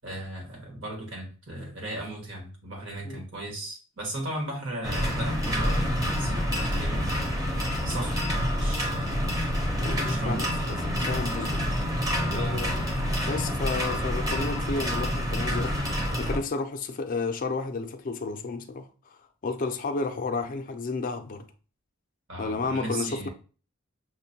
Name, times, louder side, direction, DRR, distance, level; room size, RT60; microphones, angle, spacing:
voice 1, 0.0-7.6 7.8-9.2 10.0-10.7 12.3-12.7 22.3-23.3, right 1 dB, 65° right, 1.4 m, -37 dB
sound 1, 4.8-16.4, equal, 15° right, 0.7 m, -27 dB
voice 2, 9.8-11.5 12.3-12.9 13.2-15.8 16.2-19.2 19.4-21.4 22.4-23.3, left 3 dB, 40° left, 0.4 m, -32 dB
5.9 x 2.1 x 2.7 m
head